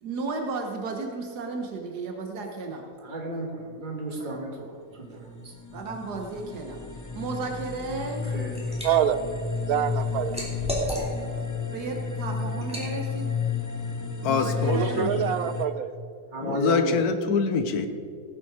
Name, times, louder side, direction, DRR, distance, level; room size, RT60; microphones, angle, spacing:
voice 1, 0.0-2.8 4.2-4.3 5.7-6.8 7.1-8.3 11.7-13.3 14.3-15.0, right 3 dB, 90° right, 3 dB, 1.7 m, -33 dB
voice 2, 3.0-4.7 4.9-5.5 8.3-8.6 16.3-17.0, right 1 dB, 30° right, 1 dB, 1.9 m, -33 dB
sound 1, 5.0-15.7, left 5 dB, 25° left, 0.4 m, -32 dB
Liquid, 8.1-8.9 9.3-11.4 11.9-12.1 12.6-12.9, equal, 5° right, 2.7 m, -33 dB
voice 3, 8.8-9.2 9.7-10.4 14.6-15.9, right 9 dB, 70° right, 12 dB, 1.0 m, -25 dB
voice 4, 14.2-15.4 16.4-17.9, left 5 dB, 75° left, 9 dB, 1.4 m, -25 dB
18.0 x 7.6 x 4.8 m, 2.2 s
omnidirectional pair, 1.7 m